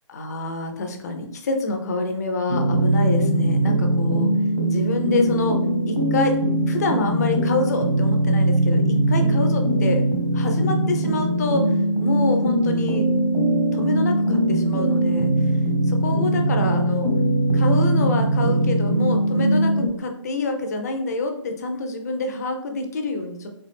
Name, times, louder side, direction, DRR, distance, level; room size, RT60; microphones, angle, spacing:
voice 1, 0.1-4.3 4.7-5.6 5.9-6.4 6.6-10.0 10.3-11.7 12.0-13.1 13.7-15.3 15.9-17.1 17.5-23.6, left 3 dB, 30° left, 4 dB, 0.5 m, -27 dB
sound 1, 2.5-19.9, right 1 dB, 60° right, 1.3 m, -21 dB
4.1 x 2.3 x 3.3 m, 0.79 s
figure-of-eight pair, 145°, 17 cm